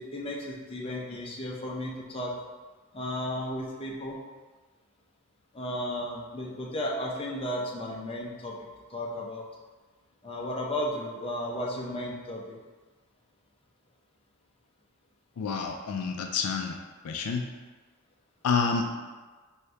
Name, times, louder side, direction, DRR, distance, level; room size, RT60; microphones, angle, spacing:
voice 1, 0.0-2.3 2.9-4.2 5.5-8.5 8.9-9.5 10.2-12.6, left 1 dB, 25° left, -3 dB, 0.6 m, -34 dB
voice 2, 15.4-16.8 17.0-17.4 18.4-18.9, left 5 dB, 75° left, 3 dB, 0.4 m, -28 dB
4.6 x 2.7 x 3.3 m, 1.3 s
head